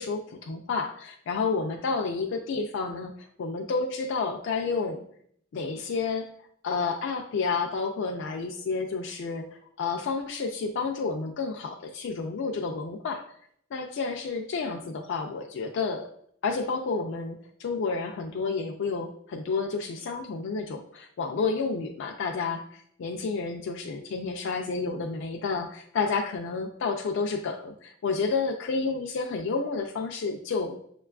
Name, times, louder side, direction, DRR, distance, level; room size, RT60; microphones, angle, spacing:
voice 1, 0.0-5.0 5.5-6.3 6.6-13.2 13.7-16.1 16.4-30.8, left 4 dB, 60° left, 3 dB, 0.3 m, -30 dB
6.4 x 2.2 x 2.3 m, 0.66 s
head